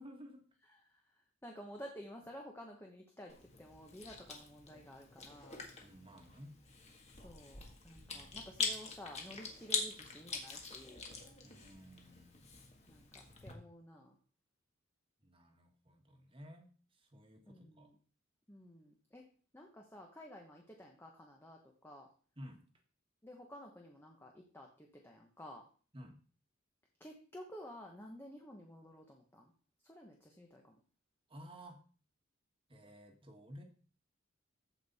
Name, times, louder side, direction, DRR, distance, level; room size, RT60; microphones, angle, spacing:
voice 1, 0.0-0.4 5.8-6.6 8.1-8.5 11.4-12.5 15.2-17.9 22.4-22.6 25.9-26.2 31.3-31.8 32.7-33.6, equal, 25° right, 3 dB, 1.5 m, -54 dB
voice 2, 0.6-5.7 7.1-11.0 12.9-14.2 17.5-18.0 18.5-19.2 19.5-22.1 23.2-25.6 27.0-29.5 29.8-30.8, equal, 10° left, 1 dB, 1.0 m, -53 dB
Chewing mastication, 3.3-13.5, left 4 dB, 30° left, 1.7 m, -44 dB
15.0 x 5.3 x 4.2 m, 0.42 s
head